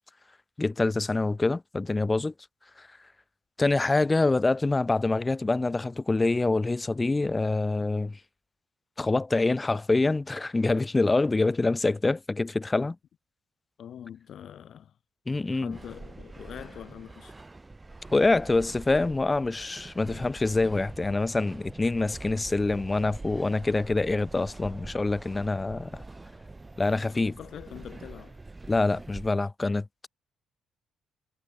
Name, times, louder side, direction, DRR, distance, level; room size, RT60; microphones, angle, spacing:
voice 1, 0.6-2.3 3.6-8.2 9.0-13.0 15.3-15.8 18.1-25.9 26.8-27.4 28.7-30.1, left 3 dB, 20° left, 0.6 m, -25 dB
voice 2, 13.8-14.9 15.5-17.3 20.1-20.3 27.1-28.4, left 9 dB, 65° left, 4.6 m, -44 dB
sound 1, 15.7-29.3, right 2 dB, 20° right, 3.0 m, -44 dB
cardioid pair, 90°, 0 cm